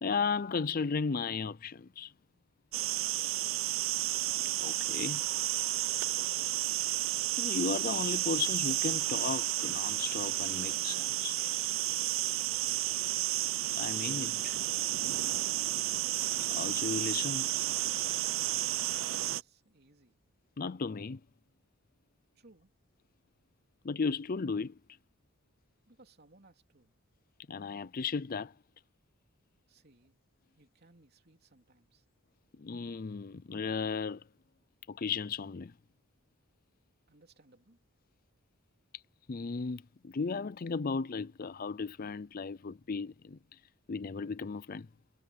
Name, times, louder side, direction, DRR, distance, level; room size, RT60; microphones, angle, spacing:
voice 1, 0.0-2.1 4.4-5.3 7.4-11.5 13.8-14.6 16.5-17.5 20.6-21.2 23.8-24.8 27.5-28.5 32.6-34.2 34.9-35.7 39.3-43.4 43.9-44.9, left 5 dB, 40° left, 0.5 m, -35 dB
sound 1, 2.7-19.4, right 15 dB, 65° right, 0.5 m, -32 dB
voice 2, 6.2-6.6 12.4-13.1 18.9-20.2 22.3-22.7 25.9-26.9 29.7-30.2 30.5-32.0 37.1-37.8, right 2 dB, 45° right, 3.4 m, -63 dB
head